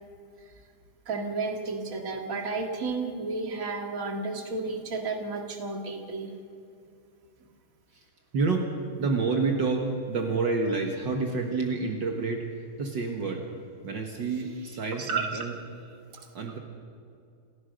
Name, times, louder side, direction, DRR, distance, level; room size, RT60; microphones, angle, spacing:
voice 1, 1.1-6.4 15.0-15.3, right 3 dB, 40° right, 3 dB, 2.4 m, -32 dB
voice 2, 8.3-13.5 13.8-15.6 16.3-16.6, right 4 dB, 60° right, 2 dB, 2.2 m, -29 dB
28.5 x 16.0 x 6.5 m, 2.5 s
omnidirectional pair, 2.3 m